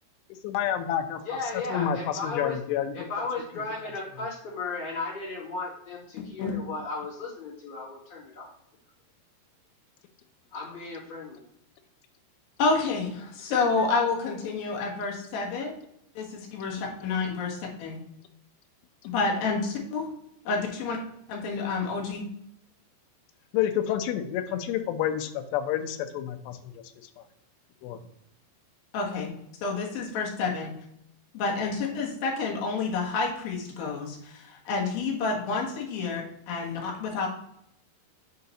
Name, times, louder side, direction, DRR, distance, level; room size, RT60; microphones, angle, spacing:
voice 1, 0.4-1.2 1.5-2.9 3.6-3.7 23.5-26.8 27.2-27.3 27.8-28.0, left 10 dB, 80° left, 6 dB, 2.7 m, -29 dB
voice 2, 1.2-2.5 2.9-8.5 10.5-11.4, left 3 dB, 35° left, -7 dB, 2.8 m, -35 dB
voice 3, 12.6-15.7 16.2-18.0 19.1-20.1 20.4-21.0 21.3-22.3 28.9-29.3 29.6-30.7 31.3-37.3, left 4 dB, 65° left, -1 dB, 2.7 m, -29 dB
6.8 x 3.7 x 4.1 m, 0.75 s
omnidirectional pair, 5.1 m